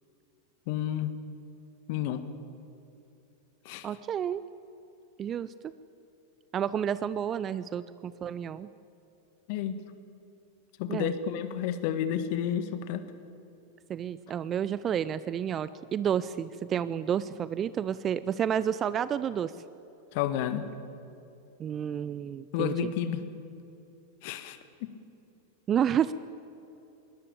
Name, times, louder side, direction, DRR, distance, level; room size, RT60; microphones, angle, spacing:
voice 1, 0.7-1.1 1.9-2.2 3.7-3.9 9.5-9.8 10.8-13.0 20.1-20.7 22.5-23.2 24.2-24.9, left 10 dB, 50° left, 11 dB, 1.7 m, -31 dB
voice 2, 3.8-4.4 5.2-5.5 6.5-8.7 10.9-11.1 13.9-19.5 21.6-22.9 25.7-26.1, right 9 dB, 30° right, 16 dB, 0.6 m, -30 dB
22.0 x 19.0 x 8.7 m, 2.7 s
figure-of-eight pair, 90°, 0 cm